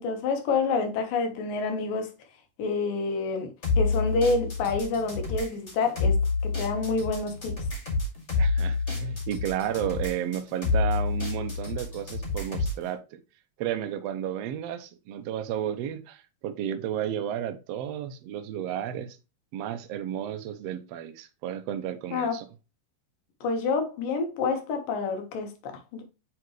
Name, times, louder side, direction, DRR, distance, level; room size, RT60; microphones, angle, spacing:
voice 1, 0.0-2.1 2.6-7.6 22.1-22.4 23.4-26.0, left 4 dB, 80° left, 3.0 m, -28 dB
sound 1, 3.6-12.8, left 4 dB, 20° left, 2.3 m, -28 dB
voice 2, 8.4-13.2 13.6-19.2 19.5-22.4, right 10 dB, 85° right, 1.4 m, -32 dB
8.1 x 4.6 x 3.1 m
omnidirectional pair, 3.9 m